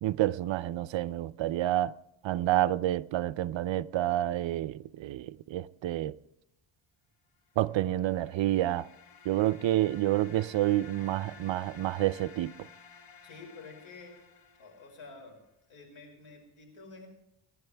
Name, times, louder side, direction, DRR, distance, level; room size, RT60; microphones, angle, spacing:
voice 1, 0.0-1.9 2.2-6.1 7.6-8.9 9.3-12.5, right 14 dB, 65° right, 0.6 m, -29 dB
sound 1, 7.6-15.3, left 5 dB, 45° left, 2.1 m, -54 dB
voice 2, 13.2-14.2 14.6-15.4 15.7-17.1, left 3 dB, 80° left, 5.8 m, -49 dB
27.0 x 11.5 x 3.4 m
cardioid pair, 140°, 49 cm